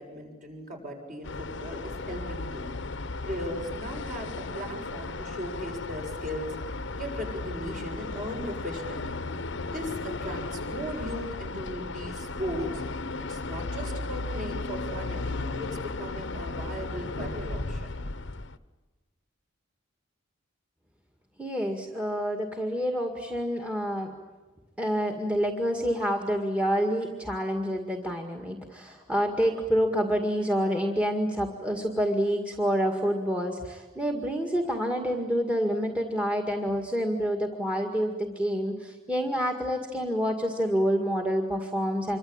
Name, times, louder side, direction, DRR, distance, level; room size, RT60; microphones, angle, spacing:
voice 1, 0.0-9.2 9.6-12.8 13.3-18.0, equal, 40° right, 1 dB, 7.1 m, -38 dB
sound 1, 1.2-18.6, left 3 dB, 60° left, 1.1 m, -35 dB
voice 2, 21.4-24.1 24.8-42.2, equal, 5° right, 3 dB, 2.0 m, -28 dB
26.5 x 24.5 x 8.9 m, 1.2 s
head